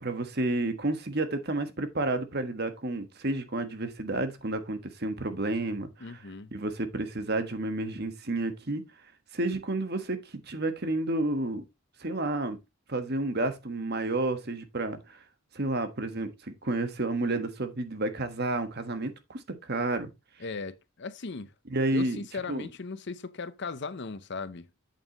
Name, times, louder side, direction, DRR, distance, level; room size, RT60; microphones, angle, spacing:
voice 1, 0.0-6.2 6.5-8.8 9.3-10.2 10.5-11.6 12.0-12.6 12.9-15.0 15.5-20.1 21.7-22.2 22.5-22.7, right 2 dB, 45° right, 1.4 m, -30 dB
voice 2, 6.0-6.5 20.4-21.5 21.9-24.7, left 4 dB, 50° left, 0.7 m, -37 dB
8.6 x 7.2 x 3.0 m
head